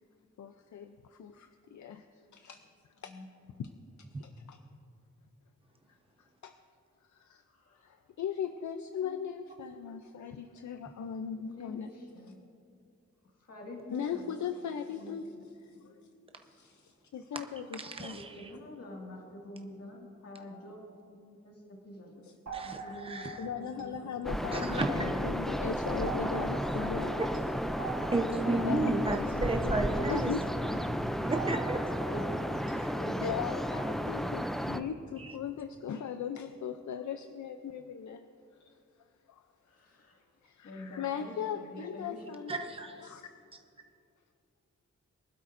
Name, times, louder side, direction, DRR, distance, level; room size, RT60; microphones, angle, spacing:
voice 1, 0.4-2.1 2.3-2.6 3.0-3.1 3.6-3.7 4.0-4.6 6.2-6.5 7.1-7.4 7.8-11.9 13.9-15.3 15.6-16.0 16.4-18.1 22.2-22.3 23.4-27.3 28.6-29.8 30.1-30.8 33.2-38.3 38.7-38.8 39.3-39.4 40.4-42.7 43.0-43.3, left 7 dB, 80° left, 8 dB, 0.5 m, -38 dB
voice 2, 7.4-7.9 9.0-9.2 10.3-10.4 10.8-10.9 11.3-12.4 13.2-14.4 14.8-15.9 18.1-22.3 22.6-25.5 29.6-31.1 32.0-32.6 32.9-33.4 39.6-40.3 40.6-42.3, equal, 55° left, -1 dB, 2.1 m, -46 dB
voice 3, 17.8-18.3 22.5-23.4 24.5-25.0 28.1-30.3 31.2-31.9 35.2-35.3 42.5-43.1, right 2 dB, 20° right, 4 dB, 0.9 m, -33 dB
sound 1, 22.5-25.2 26.0-30.5 31.3-33.1, right 4 dB, 75° right, 1.8 m, -45 dB
sound 2, 24.2-34.8, equal, ahead, 0.4 m, -33 dB
23.5 x 12.0 x 2.6 m, 2.5 s
wide cardioid pair, 145°, 29 cm